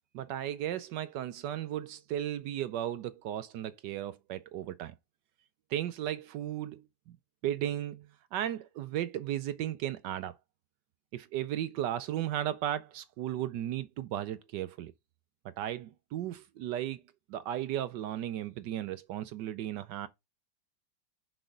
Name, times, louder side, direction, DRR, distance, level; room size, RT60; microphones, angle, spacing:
voice 1, 0.1-4.9 5.7-6.9 7.4-10.3 11.1-14.9 15.4-17.0 17.3-20.1, right 12 dB, 75° right, 1.2 m, -35 dB
6.1 x 5.0 x 5.1 m
omnidirectional pair, 2.0 m